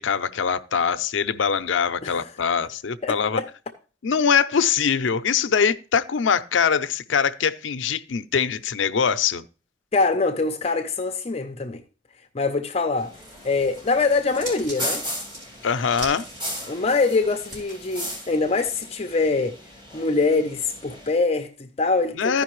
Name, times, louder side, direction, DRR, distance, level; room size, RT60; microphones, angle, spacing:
voice 1, 0.0-3.4 4.0-9.4 15.6-16.3 22.2-22.4, left 6 dB, 90° left, 0.5 m, -23 dB
voice 2, 3.0-3.5 9.9-11.8 12.3-13.1 13.4-15.0 16.7-19.5 19.9-22.4, left 3 dB, 35° left, 0.6 m, -24 dB
sound 1, 13.0-21.1, equal, 25° right, 2.6 m, -36 dB
sound 2, 13.1-18.8 19.1-19.2, right 1 dB, 45° right, 4.2 m, -42 dB
14.5 x 5.2 x 3.0 m
head